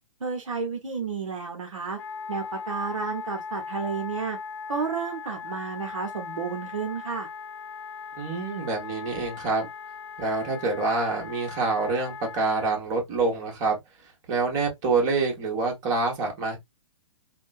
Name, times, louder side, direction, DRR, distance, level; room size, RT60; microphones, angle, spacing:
voice 1, 0.2-2.0 2.3-4.4 4.7-7.3, right 5 dB, 80° right, 0.9 m, -31 dB
Wind instrument woodwind instrument, 2.0-12.8, left 5 dB, 60° left, 0.5 m, -39 dB
voice 2, 8.2-9.7 10.2-13.8 14.3-16.6, right 3 dB, 40° right, 1.6 m, -26 dB
3.5 x 2.3 x 2.5 m
figure-of-eight pair, 120°, 16 cm